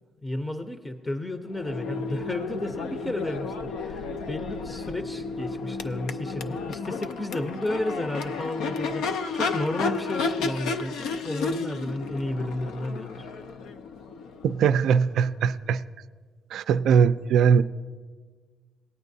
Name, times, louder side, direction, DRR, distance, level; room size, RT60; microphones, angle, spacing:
voice 1, 0.2-13.3, left 1 dB, 15° left, 0.6 m, -32 dB
Crowd / Race car auto racing / Accelerating revving vroom, 1.5-15.3, left 4 dB, 90° left, 0.4 m, -32 dB
voice 2, 14.4-15.8 16.5-17.6, right 7 dB, 75° right, 0.3 m, -21 dB
18.5 x 9.0 x 2.7 m
cardioid pair, 90°, 0 cm